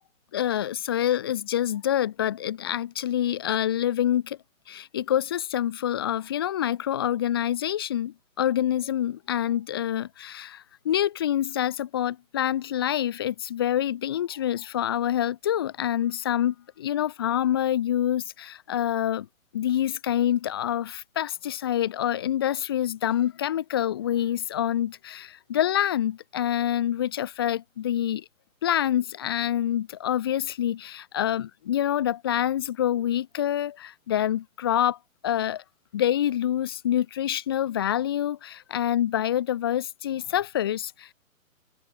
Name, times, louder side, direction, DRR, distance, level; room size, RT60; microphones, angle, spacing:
voice 1, 0.3-4.4 4.7-19.3 19.5-28.2 28.6-35.0 35.2-35.6 35.9-41.1, left 11 dB, 15° left, 1.4 m, -26 dB
hypercardioid pair, 175°, 41 cm